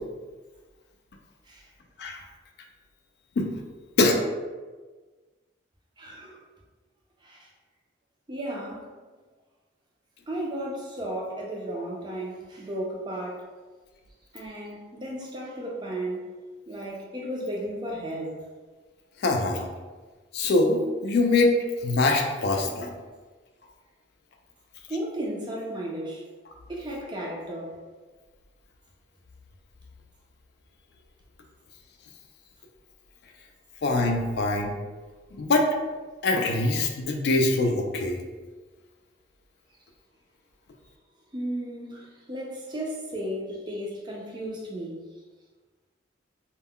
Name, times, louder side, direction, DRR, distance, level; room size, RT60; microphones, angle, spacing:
voice 1, 6.0-6.4 7.2-7.5 8.3-8.9 10.3-13.5 14.3-16.3 16.7-18.4 24.9-26.2 26.7-27.7 41.3-45.0, right 1 dB, 25° right, -2 dB, 0.4 m, -34 dB
voice 2, 19.2-19.7 20.3-21.5 21.8-22.9 33.8-34.7 35.3-35.7 36.2-38.2, left 2 dB, 55° left, 2 dB, 0.3 m, -23 dB
2.2 x 2.1 x 3.6 m, 1.3 s
head